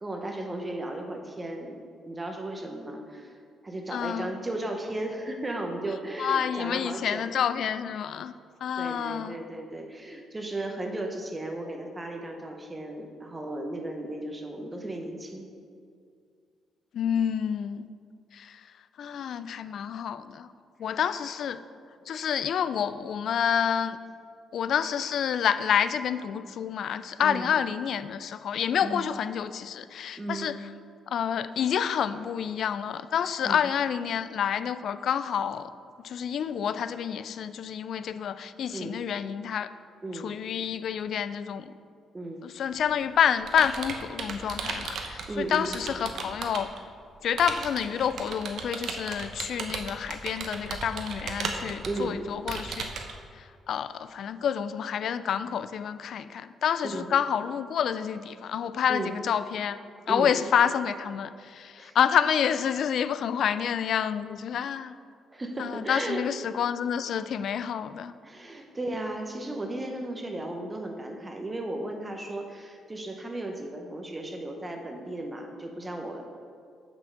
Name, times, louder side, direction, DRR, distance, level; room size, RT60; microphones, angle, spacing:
voice 1, 0.0-3.4 3.6-7.3 8.8-15.4 20.9-21.0 27.2-27.5 28.8-29.1 30.2-30.6 33.4-33.6 38.7-39.0 40.0-40.3 42.1-42.4 45.3-45.7 51.8-52.2 56.8-57.1 58.9-59.1 60.1-60.3 61.8-62.0 65.3-66.2 68.2-76.3, right 2 dB, 20° right, 3 dB, 0.9 m, -35 dB
voice 2, 3.9-4.3 6.2-8.3 8.6-9.4 16.9-17.9 18.3-18.6 19.0-20.5 20.8-21.6 22.1-24.0 24.5-30.5 31.1-35.7 36.0-39.7 40.1-41.7 42.4-46.7 47.2-52.9 53.4-59.8 60.1-65.0 65.6-68.1, left 8 dB, 65° left, 13 dB, 0.3 m, -28 dB
Computer keyboard, 42.7-46.8 47.4-53.1, right 5 dB, 65° right, 0.8 m, -36 dB
6.7 x 5.2 x 6.5 m, 2.2 s
cardioid pair, 90°, 0 cm